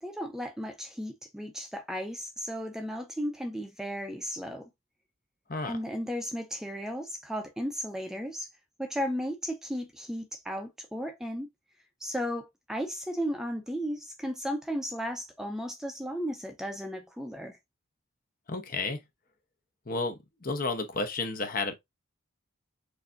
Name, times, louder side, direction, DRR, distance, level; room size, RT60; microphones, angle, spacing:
voice 1, 0.0-4.7 5.7-8.5 8.8-11.5 12.0-17.6, equal, ahead, 0.6 m, -35 dB
voice 2, 18.5-19.0 19.9-21.7, left 3 dB, 45° left, 0.8 m, -32 dB
6.4 x 2.7 x 2.5 m
head